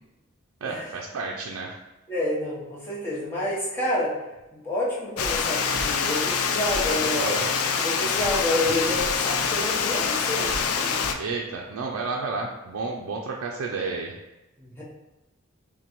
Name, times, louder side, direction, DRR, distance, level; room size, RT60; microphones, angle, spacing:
voice 1, 0.6-1.8 6.7-7.4 11.2-14.1, right 4 dB, 80° right, -1 dB, 0.4 m, -31 dB
voice 2, 2.1-4.1 4.5-7.4 7.8-10.9 14.6-14.8, left 1 dB, 10° left, -7 dB, 0.9 m, -29 dB
Water, 5.2-11.1, left 6 dB, 85° left, 0.4 m, -25 dB
sound 1, 5.2-11.1, equal, 30° left, 0.5 m, -39 dB
5.8 x 2.2 x 3.0 m, 1.0 s
head